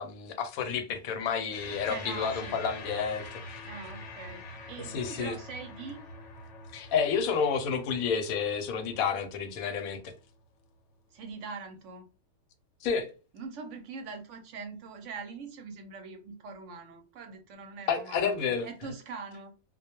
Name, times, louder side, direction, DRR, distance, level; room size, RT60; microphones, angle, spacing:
voice 1, 0.0-3.6 4.9-5.3 6.7-10.1 12.8-13.1 17.9-18.7, left 6 dB, 85° left, 1.0 m, -30 dB
sound 1, 1.5-10.2, left 2 dB, 65° left, 1.0 m, -45 dB
voice 2, 1.8-2.6 3.6-6.0 11.1-12.1 13.3-19.5, right 4 dB, 70° right, 0.9 m, -43 dB
2.3 x 2.2 x 2.9 m
omnidirectional pair, 1.4 m